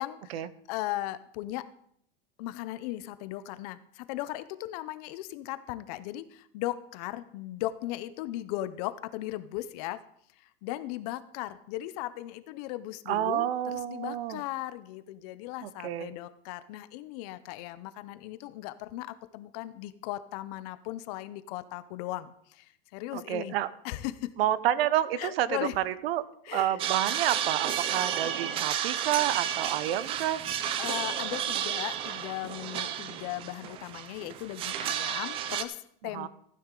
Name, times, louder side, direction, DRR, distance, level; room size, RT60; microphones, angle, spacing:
voice 1, 0.0-1.6 2.4-10.0 10.6-23.6 23.8-24.3 25.2-25.7 26.5-26.8 30.8-36.3, left 15 dB, 40° left, 13 dB, 0.6 m, -37 dB
voice 2, 13.1-14.4 15.6-16.1 23.1-23.7 24.4-26.2 26.5-30.4 36.1-36.3, right 12 dB, 75° right, 17 dB, 0.8 m, -29 dB
sound 1, 26.8-35.6, right 10 dB, 20° right, 0.4 m, -32 dB
15.0 x 9.5 x 3.8 m, 0.69 s
supercardioid pair, 160°, 31 cm